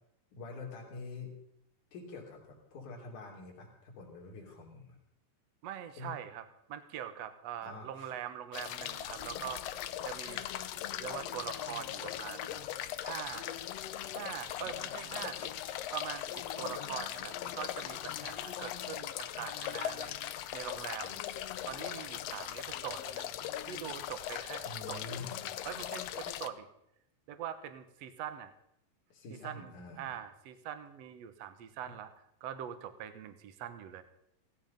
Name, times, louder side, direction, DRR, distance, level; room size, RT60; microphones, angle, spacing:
voice 1, 0.3-1.3 1.9-5.0 6.0-6.1 7.6-8.1 24.6-25.4 29.1-30.2, left 3 dB, 65° left, 0 dB, 4.6 m, -46 dB
voice 2, 5.6-10.4 11.0-12.6 13.0-13.5 14.0-15.5 15.9-21.2 21.7-23.3 23.7-25.2 25.6-26.7 27.3-28.5 29.4-32.1 32.4-34.0, right 10 dB, 60° right, 10 dB, 2.0 m, -43 dB
sound 1, 8.5-26.5, left 11 dB, 85° left, 1.4 m, -39 dB
17.0 x 15.0 x 5.3 m, 0.76 s
omnidirectional pair, 3.8 m